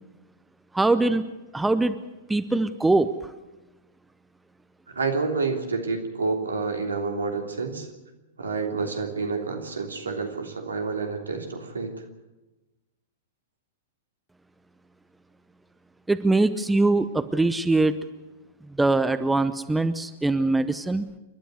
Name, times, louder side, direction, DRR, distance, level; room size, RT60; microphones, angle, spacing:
voice 1, 0.7-1.2 1.5-1.9 2.3-3.1 16.1-18.0 18.8-21.1, right 2 dB, 5° right, 12 dB, 0.8 m, -22 dB
voice 2, 4.9-7.9 8.4-12.0, right 4 dB, 75° right, 4 dB, 3.2 m, -29 dB
29.0 x 12.5 x 8.0 m, 1.1 s
figure-of-eight pair, 100°, 0 cm